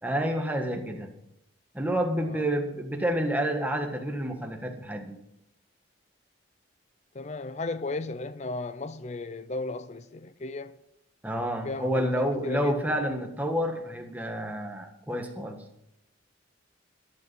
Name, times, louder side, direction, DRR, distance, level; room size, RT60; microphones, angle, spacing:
voice 1, 0.0-1.1 1.7-5.2 11.2-15.6, equal, 10° right, 1.6 m, -29 dB
voice 2, 7.1-10.8 11.6-13.0, left 2 dB, 35° left, 0.5 m, -35 dB
13.5 x 11.0 x 5.6 m
head